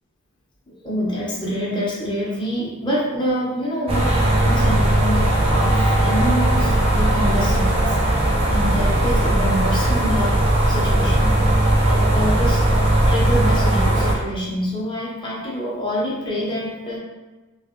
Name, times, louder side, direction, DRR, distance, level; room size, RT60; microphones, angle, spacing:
voice 1, 0.7-7.9 8.5-11.4 11.9-12.6 13.1-17.0, equal, 20° left, -7 dB, 1.0 m, -26 dB
sound 1, 3.9-14.1, right 1 dB, 25° right, 0.5 m, -18 dB
3.2 x 2.9 x 3.0 m, 1.2 s
head